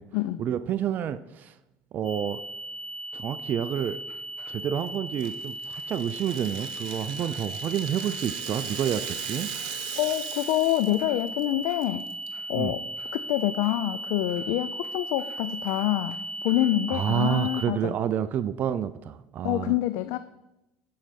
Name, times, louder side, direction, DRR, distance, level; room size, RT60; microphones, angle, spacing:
voice 1, 0.4-1.5 1.9-2.4 3.1-4.0 4.5-9.5 12.5-12.7 16.9-19.7, right 9 dB, 45° right, 12 dB, 0.4 m, -29 dB
sound 1, 2.0-17.7, right 1 dB, 10° left, 2.7 m, -37 dB
sound 2, 3.7-4.8 5.2-5.3 5.7-5.8 6.3-8.2 8.5-8.6 9.0-9.7 10.0-11.2 11.6-12.4 13.0-13.1 13.6-13.8 14.3-14.4 14.8-14.9 15.2-15.4 15.7-16.7, right 2 dB, 30° right, 2.4 m, -54 dB
Rattle (instrument), 5.2-11.0 11.3-11.4 11.8-12.3, right 11 dB, 85° right, 0.8 m, -39 dB
voice 2, 9.9-12.1 12.5-12.8 13.1-17.9 19.4-20.2, left 15 dB, 75° left, 12 dB, 0.4 m, -26 dB
10.5 x 4.7 x 5.9 m, 0.94 s
supercardioid pair, 100°, 4 cm